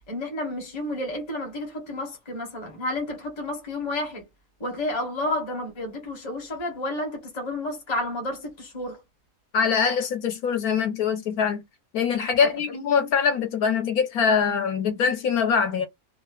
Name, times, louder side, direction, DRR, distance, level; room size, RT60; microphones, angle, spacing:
voice 1, 0.1-4.2 4.6-9.0 12.4-12.5, left 1 dB, 20° left, 0.8 m, -31 dB
voice 2, 9.5-11.6 11.9-15.9, left 6 dB, 70° left, 1.2 m, -23 dB
3.0 x 2.2 x 2.3 m
omnidirectional pair, 1.7 m